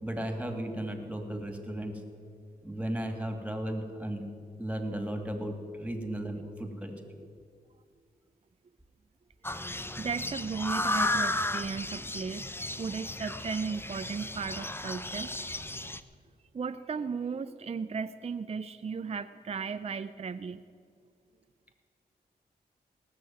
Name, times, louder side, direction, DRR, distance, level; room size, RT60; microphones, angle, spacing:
voice 1, 0.0-2.0 2.6-4.3 4.6-7.1, right 1 dB, 5° right, 5 dB, 2.7 m, -35 dB
sound 1, 9.4-16.0, left 2 dB, 15° left, 0.7 m, -34 dB
voice 2, 9.6-12.4 12.8-15.3 16.5-20.6, right 5 dB, 40° right, 11 dB, 0.5 m, -36 dB
18.5 x 6.7 x 9.2 m, 2.2 s
cardioid pair, 45°, 17 cm